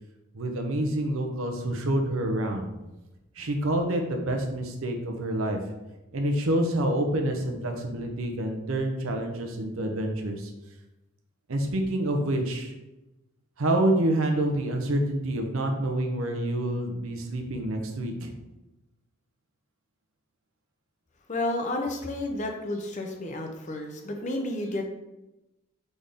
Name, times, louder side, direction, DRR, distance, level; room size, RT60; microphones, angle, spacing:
voice 1, 0.3-2.6 3.4-5.6 6.1-10.5 11.5-12.7 13.6-18.3, right 1 dB, 80° right, 4 dB, 0.7 m, -27 dB
voice 2, 21.3-24.9, left 2 dB, 35° left, 3 dB, 0.6 m, -31 dB
4.0 x 3.4 x 3.8 m, 0.99 s
head